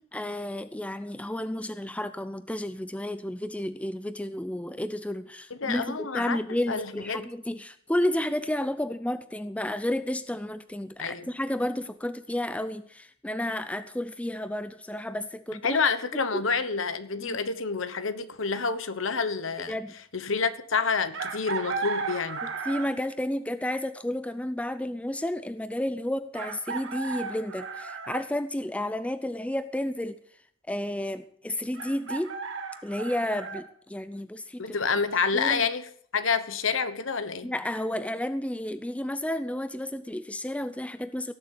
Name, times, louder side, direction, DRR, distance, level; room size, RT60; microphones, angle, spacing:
voice 1, 0.0-15.8 16.3-16.5 17.1-17.4 19.7-19.9 22.4-30.2 30.7-32.3 32.8-34.6 35.3-35.6 37.4-41.3, left 1 dB, 5° left, 0.5 m, -31 dB
voice 2, 5.6-6.4 6.7-7.3 11.0-11.3 15.6-19.8 20.1-22.4 34.6-35.9 36.1-37.5, left 5 dB, 65° left, 1.1 m, -28 dB
Chicken rooster, 21.1-23.1 24.8-24.9 26.3-28.3 31.7-33.6, right 5 dB, 65° right, 1.8 m, -35 dB
17.5 x 7.2 x 8.1 m
head